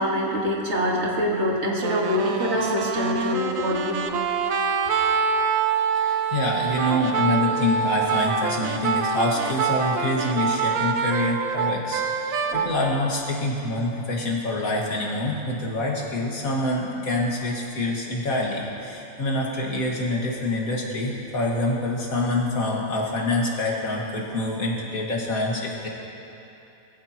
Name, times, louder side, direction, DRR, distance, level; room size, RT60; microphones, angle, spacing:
voice 1, 0.0-4.1, left 1 dB, 55° right, -3 dB, 2.1 m, -25 dB
sound 1, 1.8-12.8, right 6 dB, 75° right, 1.1 m, -25 dB
voice 2, 5.9-25.9, left 1 dB, 75° left, -3 dB, 2.3 m, -26 dB
22.0 x 14.5 x 3.0 m, 2.9 s
omnidirectional pair, 1.5 m